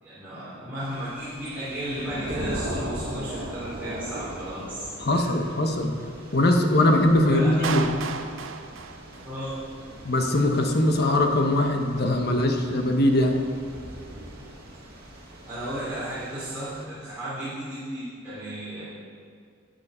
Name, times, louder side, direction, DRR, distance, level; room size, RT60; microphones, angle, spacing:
voice 1, 0.0-5.3 7.3-7.6 9.2-9.6 15.5-18.8, equal, 10° right, -14 dB, 3.4 m, -34 dB
Thunder / Rain, 0.8-16.8, right 1 dB, 50° right, 2.0 m, -40 dB
voice 2, 5.0-5.9 6.3-7.8 10.0-13.3, left 1 dB, 50° left, 3 dB, 1.1 m, -21 dB
Clapping, 7.6-9.7, right 5 dB, 70° right, 0.7 m, -33 dB
13.5 x 9.4 x 4.4 m, 2.1 s
head